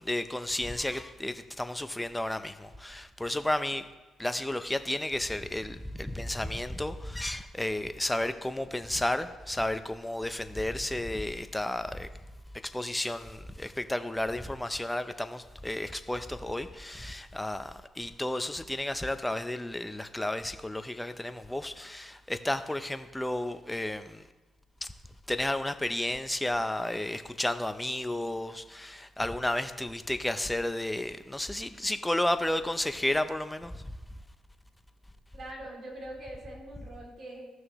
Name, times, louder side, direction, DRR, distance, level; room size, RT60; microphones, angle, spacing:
voice 1, 0.0-3.8 4.2-12.1 12.6-24.2 24.8-24.9 25.3-34.0, left 1 dB, 10° left, 0.5 m, -32 dB
voice 2, 35.3-37.5, right 1 dB, 50° right, 2.7 m, -43 dB
14.5 x 6.3 x 3.1 m
cardioid pair, 90°, 0 cm